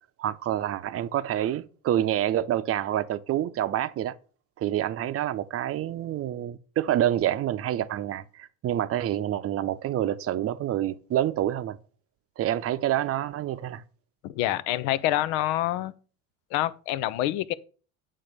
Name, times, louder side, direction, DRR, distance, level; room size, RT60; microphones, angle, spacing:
voice 1, 0.2-4.1 4.6-11.8 12.4-13.8, right 12 dB, 40° right, 0.7 m, -27 dB
voice 2, 14.2-15.9 16.5-17.5, left 14 dB, 70° left, 0.7 m, -26 dB
8.6 x 3.7 x 6.7 m
supercardioid pair, 85°, 35 cm